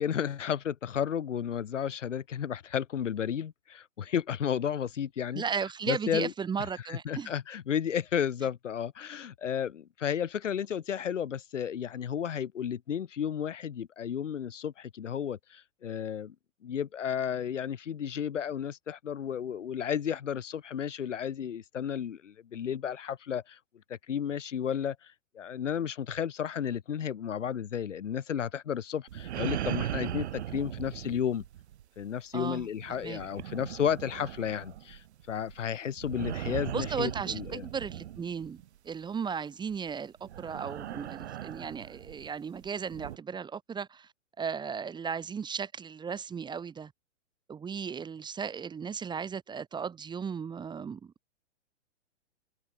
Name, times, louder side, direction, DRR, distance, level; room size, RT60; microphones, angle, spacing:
voice 1, 0.0-5.4 5.9-6.3 6.9-16.3 16.6-23.6 23.9-31.4 32.0-37.6, left 8 dB, 75° left, 5.1 m, -33 dB
voice 2, 5.3-7.3 32.3-32.7 33.0-33.2 36.7-44.1 44.4-46.9 47.5-51.1, right 6 dB, 10° right, 2.1 m, -36 dB
sound 1, 29.1-32.0 32.6-38.7 39.7-39.9 40.2-43.2, right 11 dB, 65° right, 4.1 m, -39 dB
hypercardioid pair, 140°, 37 cm